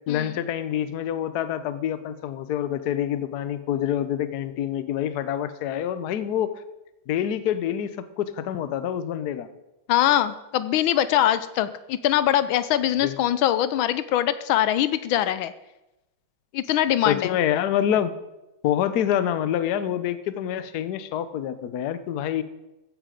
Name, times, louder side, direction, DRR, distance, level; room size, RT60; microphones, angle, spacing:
voice 1, 0.1-6.5 7.1-9.5 13.0-13.1 17.1-18.1 18.6-22.4, left 10 dB, 60° left, 13 dB, 1.2 m, -26 dB
voice 2, 9.9-15.5 16.5-17.3, left 11 dB, 80° left, 14 dB, 1.4 m, -22 dB
15.0 x 9.9 x 5.1 m, 0.96 s
omnidirectional pair, 2.2 m